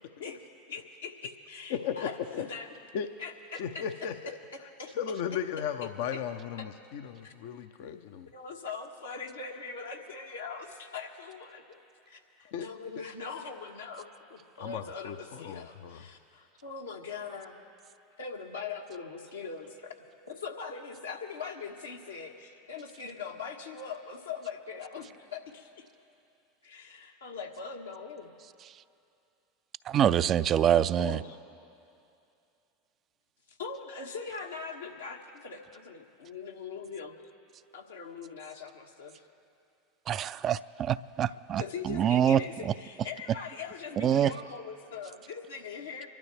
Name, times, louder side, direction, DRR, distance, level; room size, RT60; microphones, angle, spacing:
voice 1, 0.7-2.7 3.2-3.9 4.8-5.0 6.1-6.2 7.2-7.3 8.3-11.8 12.1-17.6 18.2-19.9 20.3-25.9 26.6-28.3 31.0-31.4 33.5-37.1 37.7-39.2 41.3-46.1, left 5 dB, 85° left, 1 dB, 1.3 m, -41 dB
voice 2, 1.7-2.5 2.9-3.1 3.6-4.3 5.0-8.3 12.4-12.7 14.6-16.0, left 8 dB, 65° left, 8 dB, 0.6 m, -35 dB
voice 3, 29.9-31.2 40.1-42.4 42.7-42.8 44.0-44.3, right 9 dB, 40° right, 15 dB, 0.3 m, -25 dB
26.5 x 12.0 x 3.3 m, 2.6 s
hypercardioid pair, 85°, 0 cm